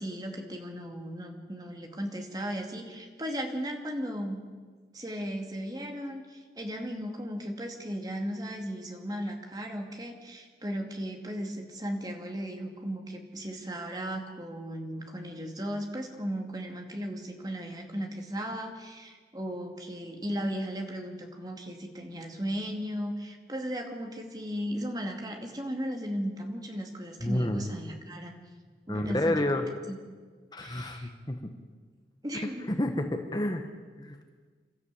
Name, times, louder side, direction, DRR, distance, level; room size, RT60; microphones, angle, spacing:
voice 1, 0.0-4.4 4.9-28.4 28.9-29.5 29.9-30.0 30.6-31.1 32.2-32.7, equal, 20° right, 3 dB, 2.4 m, -36 dB
voice 2, 27.2-27.7 28.9-29.6 30.5-31.5 32.8-33.6 34.0-34.2, left 1 dB, 25° left, 5 dB, 1.2 m, -29 dB
27.5 x 13.5 x 8.4 m, 1.5 s
head